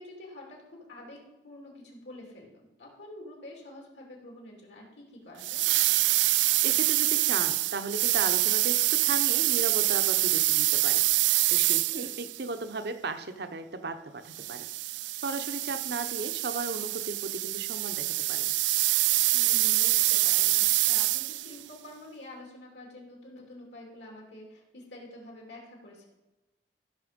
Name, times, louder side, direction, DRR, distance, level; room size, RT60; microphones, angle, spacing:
voice 1, 0.0-5.7 11.9-12.1 19.3-26.1, left 1 dB, 80° left, -1 dB, 3.0 m, -47 dB
sound 1, 5.4-12.4 14.3-21.6, right 18 dB, 90° right, 0.3 m, -26 dB
voice 2, 6.6-11.0 11.5-14.7 15.2-18.6, right 3 dB, 65° right, 8 dB, 0.9 m, -36 dB
15.0 x 6.1 x 5.2 m, 1.1 s
head